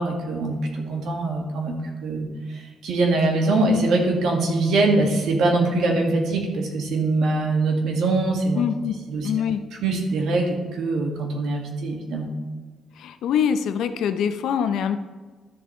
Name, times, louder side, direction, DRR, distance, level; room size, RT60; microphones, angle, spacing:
voice 1, 0.0-8.6 9.1-9.3 9.8-12.3, right 2 dB, 90° right, 0 dB, 1.9 m, -23 dB
voice 2, 8.6-9.0 9.2-9.6 13.0-15.0, left 8 dB, 80° left, 9 dB, 0.6 m, -24 dB
12.5 x 7.1 x 3.2 m, 1.4 s
cardioid pair, 155°, 0 cm